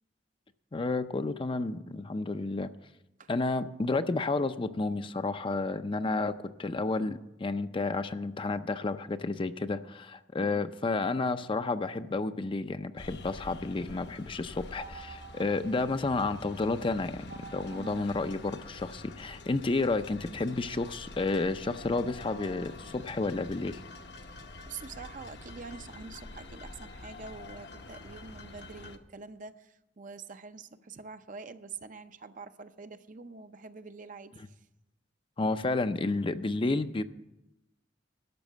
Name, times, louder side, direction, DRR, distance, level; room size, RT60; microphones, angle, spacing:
voice 1, 0.7-2.7 3.3-6.3 6.6-23.8 35.4-37.0, left 3 dB, 30° left, 10 dB, 0.5 m, -31 dB
sound 1, 13.0-29.0, left 2 dB, 65° left, 0.9 m, -47 dB
sound 2, 14.7-16.5 17.2-19.0 19.7-24.0, right 5 dB, 80° right, 3.1 m, -53 dB
voice 2, 17.7-18.1 24.2-24.3 24.7-34.7, right 4 dB, 45° right, 10 dB, 0.6 m, -46 dB
12.0 x 6.4 x 9.2 m, 0.91 s
head